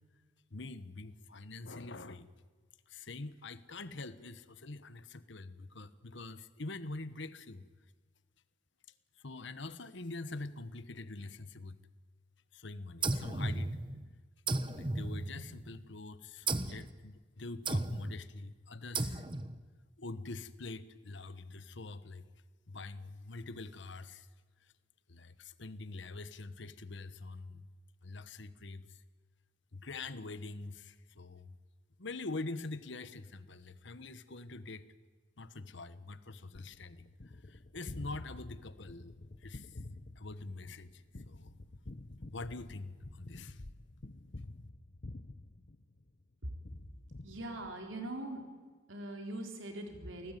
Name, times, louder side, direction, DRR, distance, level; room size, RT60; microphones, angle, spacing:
voice 1, 0.5-2.3 2.9-7.7 9.2-11.8 12.5-13.8 14.7-19.2 20.0-22.3 22.7-24.3 24.6-24.7 25.1-27.7 28.0-29.0 29.7-31.6 32.0-34.8 35.4-39.8 40.2-41.6 42.3-43.6, left 3 dB, 65° left, 13 dB, 1.3 m, -45 dB
sound 1, 13.0-14.1 14.5-15.8 16.5-16.9 17.7-18.2 19.0-19.6, right 2 dB, 25° right, 1.1 m, -35 dB
Gunshot gunfire, 36.5-46.2 46.6-48.1, left 2 dB, 50° left, 1.0 m, -49 dB
voice 2, 47.2-48.5 48.9-50.3, right 1 dB, 90° right, 3 dB, 4.1 m, -41 dB
28.5 x 19.0 x 9.3 m, 1.5 s
head